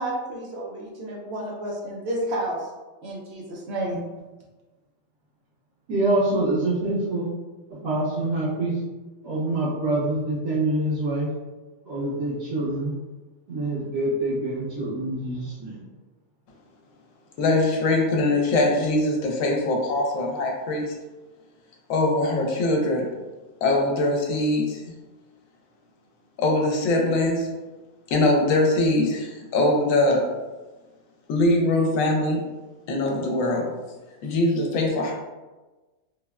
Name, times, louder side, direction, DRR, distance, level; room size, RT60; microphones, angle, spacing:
voice 1, 0.0-2.7 3.0-4.0, right 1 dB, 65° right, -3 dB, 0.7 m, -30 dB
voice 2, 5.9-7.3 7.7-8.8 9.2-11.3 11.8-12.9 13.5-15.8, right 2 dB, 85° right, -12 dB, 1.3 m, -25 dB
voice 3, 17.4-20.9 21.9-23.1 23.6-24.8 26.4-27.5 28.1-30.3 31.3-32.4 32.9-33.7 34.2-35.1, left 2 dB, 80° left, 1 dB, 1.0 m, -22 dB
3.3 x 2.1 x 2.3 m, 1.2 s
omnidirectional pair, 1.4 m